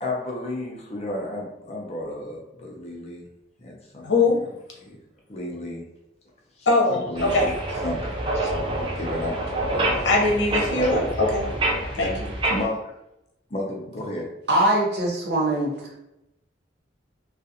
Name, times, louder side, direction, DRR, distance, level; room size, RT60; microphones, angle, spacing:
voice 1, 0.0-3.3 3.6-4.1 4.8-4.9 5.3-5.8 6.9-7.5 7.8-10.1 10.7-10.9 11.9-12.1 12.4-12.8 13.5-14.3, left 1 dB, 35° left, -1 dB, 0.5 m, -32 dB
voice 2, 4.0-4.4 6.7-7.5 10.0-11.4 12.0-12.1, left 2 dB, 80° left, -2 dB, 0.7 m, -21 dB
sound 1, 7.1-12.6, right 1 dB, 30° right, 0.4 m, -27 dB
voice 3, 14.5-16.0, right 1 dB, 60° right, -2 dB, 0.7 m, -22 dB
2.3 x 2.3 x 2.7 m, 0.85 s
head